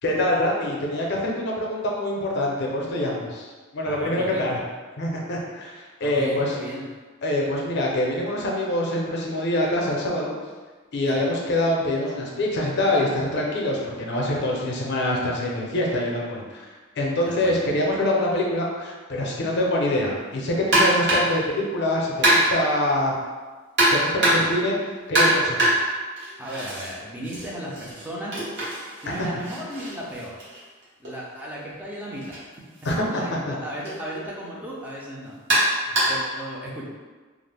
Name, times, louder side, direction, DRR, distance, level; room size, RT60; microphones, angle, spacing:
voice 1, 0.0-4.6 5.0-6.6 7.2-10.3 10.9-16.7 17.0-23.1 23.9-24.8 25.1-25.7 29.1-29.2 32.8-33.2 33.5-33.6, left 1 dB, 55° left, -1 dB, 0.5 m, -25 dB
voice 2, 3.8-4.4 6.0-6.9 11.1-11.3 17.3-17.6 24.2-24.5 26.4-28.3 29.0-30.4 31.0-32.5 33.1-35.4 35.9-36.9, equal, 10° right, -5 dB, 0.4 m, -35 dB
sound 1, 20.7-21.4 22.2-22.7 23.8-24.6 25.1-26.9 27.2-31.1 32.2-32.4 32.8-32.9 33.9-34.0 35.5-36.3, right 1 dB, 60° right, 1.0 m, -23 dB
2.4 x 2.0 x 3.3 m, 1.4 s
head